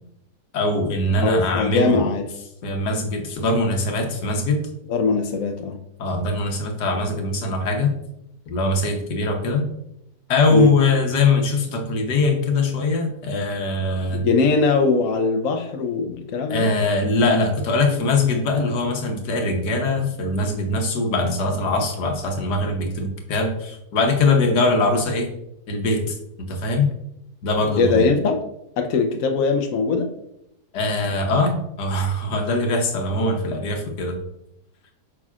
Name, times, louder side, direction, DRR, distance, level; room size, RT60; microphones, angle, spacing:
voice 1, 0.5-2.0 2.6-4.6 6.0-7.9 8.5-9.7 10.3-14.2 16.5-25.3 25.7-26.9 27.4-28.1 30.7-34.2, left 2 dB, 85° left, 3 dB, 1.6 m, -22 dB
voice 2, 1.2-2.2 4.9-5.8 10.5-10.7 14.1-16.7 27.8-28.4 28.8-30.1, left 4 dB, 65° left, 4 dB, 1.0 m, -20 dB
8.5 x 6.0 x 2.4 m, 0.81 s
omnidirectional pair, 1.7 m